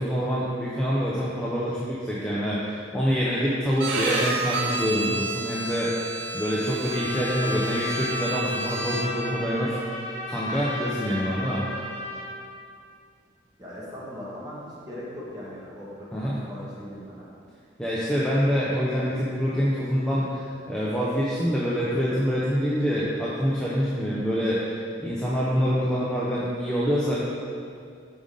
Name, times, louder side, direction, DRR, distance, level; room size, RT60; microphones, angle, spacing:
voice 1, 0.0-10.0 10.3-11.7 16.1-16.4 17.8-27.1, equal, 5° left, -8 dB, 0.5 m, -26 dB
Bowed string instrument, 3.8-9.3, right 3 dB, 85° right, 0.5 m, -30 dB
Trumpet, 6.9-12.3, left 1 dB, 40° left, 0.7 m, -34 dB
voice 2, 13.6-17.3, equal, 20° right, -7 dB, 1.2 m, -39 dB
5.1 x 4.9 x 3.8 m, 2.3 s
head